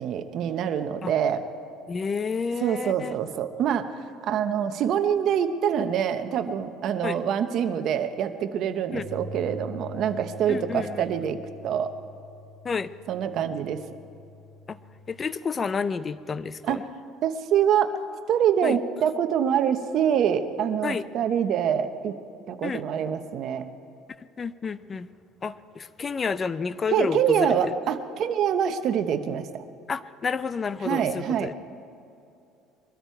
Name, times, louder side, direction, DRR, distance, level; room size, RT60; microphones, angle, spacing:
voice 1, 0.0-1.4 2.6-3.9 4.2-11.9 13.1-13.8 16.6-16.9 17.2-17.9 18.3-22.2 22.5-23.7 26.9-29.6 30.8-31.5, right 8 dB, 55° right, 8 dB, 1.0 m, -25 dB
voice 2, 1.9-3.1 7.0-7.2 8.9-9.1 10.5-11.0 12.6-12.9 14.7-14.8 15.1-16.8 18.6-18.8 20.8-21.0 22.6-22.8 24.4-25.1 25.4-27.7 29.9-31.5, left 5 dB, 30° left, 15 dB, 0.5 m, -30 dB
sound 1, 8.9-15.2, left 2 dB, 75° left, 2.9 m, -44 dB
22.5 x 13.5 x 4.6 m, 2.6 s
cardioid pair, 120°, 0 cm